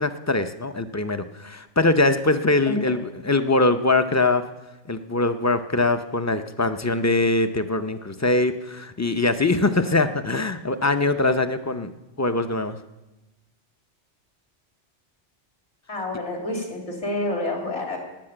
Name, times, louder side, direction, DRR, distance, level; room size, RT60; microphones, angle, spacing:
voice 1, 0.0-4.4 4.9-11.9 12.2-12.8, left 2 dB, 25° left, 9 dB, 0.4 m, -22 dB
voice 2, 15.9-18.0, left 2 dB, 70° left, 1 dB, 3.4 m, -28 dB
19.0 x 6.6 x 8.8 m, 1.0 s
omnidirectional pair, 1.2 m